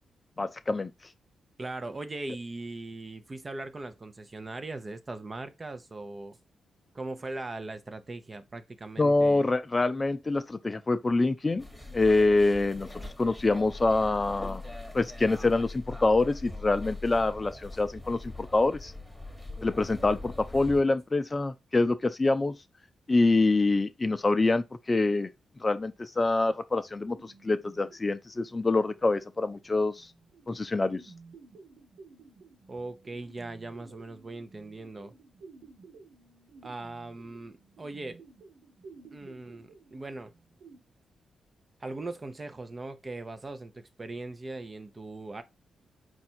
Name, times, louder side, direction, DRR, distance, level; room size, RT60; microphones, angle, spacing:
voice 1, 0.4-0.9 9.0-11.7 11.9-12.9 13.2-14.6 14.9-18.9 19.6-22.6 23.1-25.3 25.6-30.1 30.5-31.0, left 2 dB, 30° left, 0.4 m, -25 dB
voice 2, 1.6-6.4 6.9-9.4 32.7-35.1 36.6-38.2 39.1-40.3 41.8-45.4, right 2 dB, 35° right, 0.6 m, -40 dB
sound 1, 11.6-20.8, left 2 dB, ahead, 1.2 m, -42 dB
sound 2, 27.1-40.8, right 4 dB, 90° right, 1.6 m, -54 dB
4.4 x 2.5 x 4.3 m
cardioid pair, 60°, 0 cm